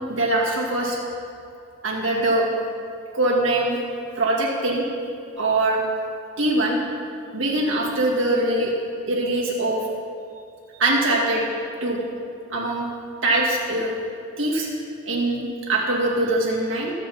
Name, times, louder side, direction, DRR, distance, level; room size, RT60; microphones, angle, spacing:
voice 1, 0.1-1.0 1.8-2.5 3.1-3.8 4.1-4.9 5.4-5.8 6.4-6.8 7.3-8.7 9.1-9.9 10.8-11.4 11.8-12.0 12.5-12.9 13.2-14.0 14.4-14.7 15.1-16.9, right 2 dB, 70° right, -3 dB, 2.3 m, -22 dB
22.0 x 7.8 x 3.6 m, 2.5 s
head